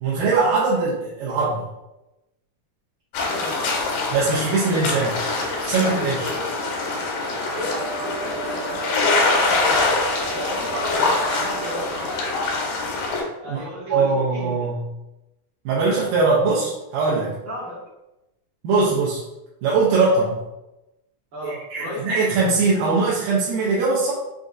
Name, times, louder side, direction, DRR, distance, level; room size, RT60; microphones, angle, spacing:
voice 1, 0.0-1.6 4.1-5.2 5.6-6.3 13.5-13.6 13.9-14.8 15.7-17.4 18.6-19.2 19.6-20.4 21.4-24.1, right 3 dB, 80° right, -7 dB, 2.4 m, -21 dB
sound 1, 3.1-13.2, left 3 dB, 90° left, 2.6 m, -24 dB
voice 2, 3.2-3.8 6.0-6.4 7.5-9.8 10.3-12.1 13.4-14.7 17.5-17.9 21.3-22.1, left 1 dB, 50° right, -8 dB, 1.7 m, -34 dB
Wind instrument woodwind instrument, 7.5-11.9, right 9 dB, 55° left, 1.0 m, -35 dB
6.2 x 2.6 x 2.4 m, 0.97 s
omnidirectional pair, 4.1 m